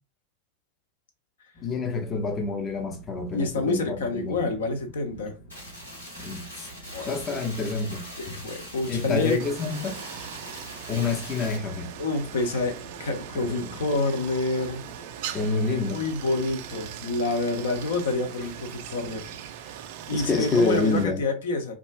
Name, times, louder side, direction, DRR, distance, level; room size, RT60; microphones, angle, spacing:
sound 1, 1.5-19.5, right 2 dB, 45° left, 1.7 m, -48 dB
voice 1, 1.6-4.5 5.1-5.2 6.2-6.7 7.1-8.4 8.9-10.0 10.9-11.9 13.4-13.7 15.3-16.0 20.1-21.2, left 3 dB, 25° left, 0.6 m, -28 dB
voice 2, 3.3-5.3 6.9-7.4 8.2-9.4 12.0-12.7 13.0-14.8 15.7-19.2 20.1-21.7, left 3 dB, 60° left, 0.7 m, -28 dB
sound 2, 5.5-11.6, equal, 80° left, 1.3 m, -42 dB
Stream, 9.4-21.0, right 10 dB, 50° right, 0.3 m, -40 dB
3.6 x 2.4 x 2.3 m
figure-of-eight pair, 90°, 0 cm